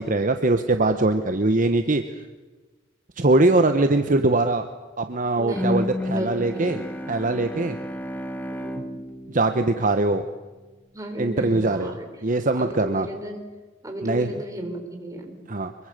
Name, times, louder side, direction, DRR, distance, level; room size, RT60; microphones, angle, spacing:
voice 1, 0.0-2.0 3.2-4.7 5.0-7.8 9.3-10.2 11.2-11.9 12.2-13.1 14.0-14.4 15.5-15.7, right 2 dB, 45° right, 7 dB, 1.1 m, -22 dB
voice 2, 5.4-6.9 8.5-9.0 10.9-12.1 12.5-13.5 13.8-15.4, equal, 15° right, 3 dB, 4.2 m, -34 dB
Bowed string instrument, 5.5-10.6, left 1 dB, 10° left, 1.8 m, -32 dB
25.0 x 23.0 x 6.7 m, 1.3 s
head